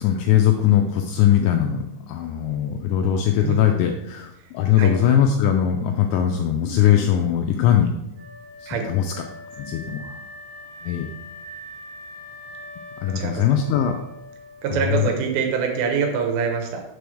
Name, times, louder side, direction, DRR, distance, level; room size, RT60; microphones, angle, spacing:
voice 1, 0.0-7.9 8.6-9.1 9.6-10.2 10.8-11.1 13.0-14.0 14.7-15.1, left 10 dB, 85° left, 4 dB, 2.6 m, -20 dB
Wind instrument woodwind instrument, 8.1-15.1, left 1 dB, 50° right, 2.1 m, -42 dB
voice 2, 14.6-16.8, right 6 dB, 75° right, 2 dB, 3.0 m, -24 dB
6.8 x 3.4 x 6.2 m, 0.86 s
omnidirectional pair, 5.5 m